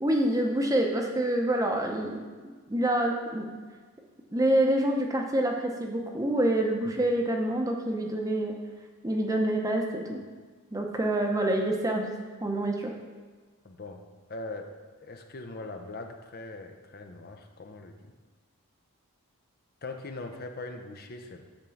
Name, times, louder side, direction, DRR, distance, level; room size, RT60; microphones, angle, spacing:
voice 1, 0.0-2.2 2.7-3.5 4.3-8.6 9.0-10.2 10.7-12.1 12.4-12.9, right 1 dB, 15° right, 1 dB, 0.8 m, -26 dB
voice 2, 13.6-14.0 14.3-14.8 15.0-18.1 19.8-21.5, left 2 dB, 45° left, 5 dB, 0.6 m, -41 dB
8.9 x 3.7 x 7.0 m, 1.4 s
head